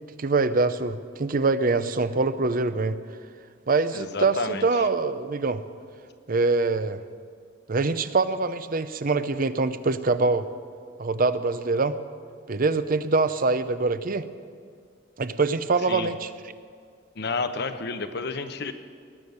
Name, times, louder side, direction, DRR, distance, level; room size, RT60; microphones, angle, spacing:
voice 1, 0.2-3.0 3.7-5.6 6.3-7.0 7.7-10.5 11.0-12.0 12.5-14.3 15.2-16.3, right 3 dB, 45° right, 12 dB, 0.6 m, -24 dB
voice 2, 3.9-4.9 15.9-16.1 17.2-18.7, left 4 dB, 60° left, 9 dB, 0.9 m, -31 dB
19.5 x 7.2 x 9.5 m, 2.1 s
head